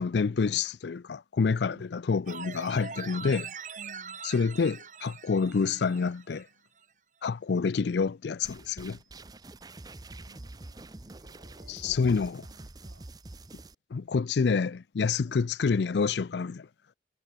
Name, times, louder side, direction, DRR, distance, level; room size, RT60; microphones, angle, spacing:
voice 1, 0.0-3.5 4.3-6.5 7.2-9.0 11.7-12.4 13.9-16.7, left 5 dB, 75° left, 0.4 m, -28 dB
voice 2, 1.5-1.8 3.8-4.2 10.2-12.2 12.5-13.1 15.2-15.4, right 1 dB, 85° right, 2.8 m, -56 dB
sound 1, 2.3-6.5 6.8-6.9, right 6 dB, 45° right, 2.4 m, -42 dB
sound 2, 8.4-13.7, right 2 dB, 20° right, 0.7 m, -46 dB
head